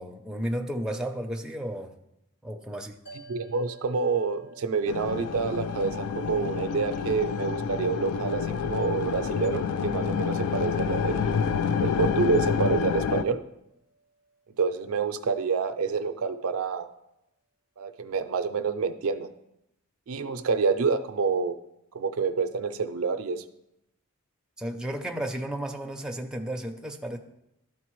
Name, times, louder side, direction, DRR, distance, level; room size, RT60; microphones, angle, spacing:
voice 1, 0.0-1.9 2.4-3.0 24.6-27.2, right 1 dB, 5° right, 2 dB, 0.4 m, -33 dB
sound 1, 3.0-15.5, right 2 dB, 60° left, 2.9 m, -54 dB
voice 2, 3.3-11.5 11.8-13.4 14.6-16.9 17.8-19.3 20.1-21.6 21.9-23.4, right 5 dB, 70° right, 9 dB, 0.4 m, -28 dB
sound 2, 4.9-13.2, left 6 dB, 90° left, 0.3 m, -28 dB
12.0 x 4.0 x 3.0 m, 0.85 s
head